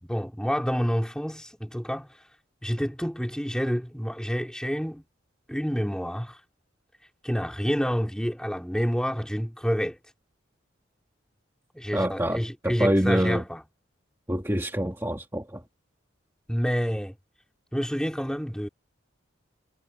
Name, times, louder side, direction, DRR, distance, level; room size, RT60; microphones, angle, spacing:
voice 1, 0.0-2.1 2.6-5.0 5.5-6.4 7.2-10.0 11.7-13.6 16.5-17.1 17.7-18.7, equal, 5° left, 3.3 m, -28 dB
voice 2, 11.9-13.4 14.3-15.6, equal, 15° right, 2.0 m, -26 dB
head